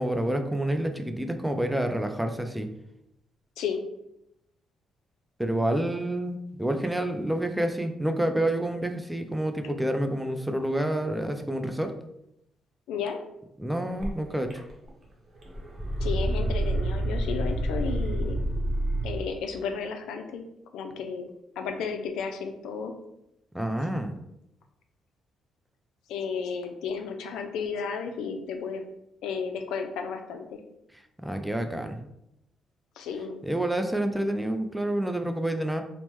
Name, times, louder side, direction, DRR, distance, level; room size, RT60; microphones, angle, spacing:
voice 1, 0.0-2.7 5.4-11.9 13.6-14.6 23.5-24.1 31.2-32.0 33.4-35.8, right 1 dB, 5° right, 6 dB, 0.3 m, -28 dB
voice 2, 12.9-13.2 16.0-18.4 19.0-20.4 20.7-22.9 26.1-28.8 29.2-30.6 33.0-33.4, left 6 dB, 90° left, 5 dB, 0.3 m, -33 dB
sound 1, 14.0-14.1 14.5-15.0 15.3-19.3, right 1 dB, 35° right, 0.8 m, -28 dB
3.1 x 2.0 x 3.0 m, 0.82 s
cardioid pair, 90°, 0 cm